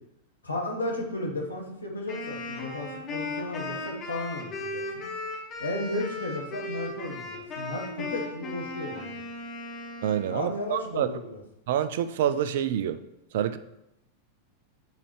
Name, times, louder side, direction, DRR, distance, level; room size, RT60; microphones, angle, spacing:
voice 1, 0.4-5.1 5.6-9.1 10.3-11.4, left 1 dB, 80° left, 0 dB, 1.3 m, -34 dB
Wind instrument woodwind instrument, 2.1-10.5, left 2 dB, 25° left, 1.7 m, -37 dB
voice 2, 10.0-11.1 11.7-13.0 13.3-13.6, right 10 dB, 55° right, 12 dB, 0.4 m, -27 dB
9.5 x 4.0 x 3.2 m, 0.86 s
figure-of-eight pair, 90°, 0 cm